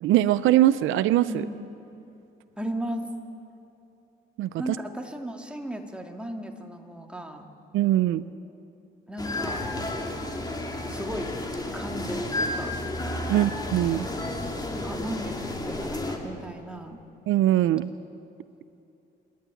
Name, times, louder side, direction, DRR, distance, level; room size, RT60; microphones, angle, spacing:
voice 1, 0.0-1.4 4.4-4.5 7.7-8.2 13.3-14.1 17.3-17.9, right 13 dB, 85° right, 15 dB, 0.5 m, -21 dB
voice 2, 2.6-3.1 4.6-7.5 9.1-9.6 10.8-11.3 11.7-12.7 13.3-13.5 14.8-17.0, equal, 5° right, 2 dB, 2.2 m, -35 dB
sound 1, 9.2-16.2, left 1 dB, 20° left, 2.7 m, -32 dB
28.0 x 11.5 x 9.1 m, 2.7 s
cardioid pair, 90°, 20 cm